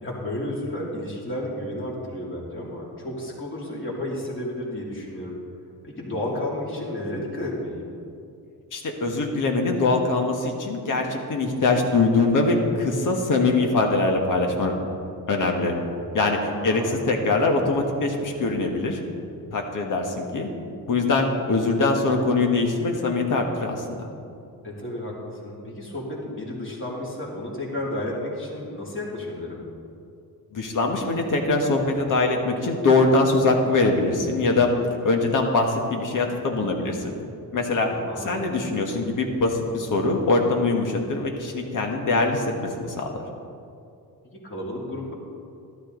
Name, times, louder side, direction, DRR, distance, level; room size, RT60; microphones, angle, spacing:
voice 1, 0.0-5.4 5.8-7.9 16.4-16.9 24.6-29.6 37.9-38.4 44.2-45.1, left 1 dB, 30° left, -3 dB, 3.0 m, -32 dB
voice 2, 8.7-14.7 15.3-15.7 16.1-19.0 19.5-20.5 20.9-24.1 30.5-34.7 35.0-37.1 37.5-37.9 38.2-43.1, left 3 dB, 55° left, 2 dB, 1.7 m, -23 dB
12.5 x 12.5 x 4.0 m, 2.5 s
cardioid pair, 115°, 38 cm